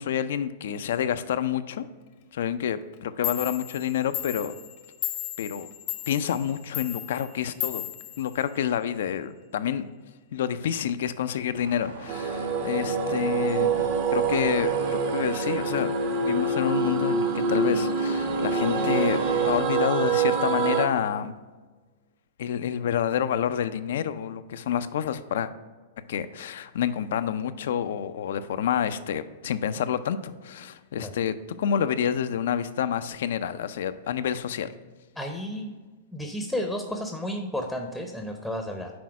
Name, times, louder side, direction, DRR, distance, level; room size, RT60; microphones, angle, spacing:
voice 1, 0.0-1.9 2.3-4.5 5.4-5.7 6.1-7.9 8.2-9.9 10.3-15.9 16.2-19.2 19.4-21.4 22.4-25.5 26.1-34.7, left 9 dB, 70° left, 12 dB, 0.4 m, -28 dB
Clock, 2.9-3.0 3.2-8.9, left 14 dB, 50° left, 0.7 m, -35 dB
sound 1, 11.6-19.6, right 3 dB, 75° right, 0.8 m, -39 dB
sound 2, 12.1-20.8, right 4 dB, 50° right, 0.9 m, -26 dB
voice 2, 35.2-35.7 36.1-38.9, equal, ahead, 3 dB, 0.6 m, -32 dB
6.1 x 4.1 x 4.7 m, 1.3 s
hypercardioid pair, 115°, 0 cm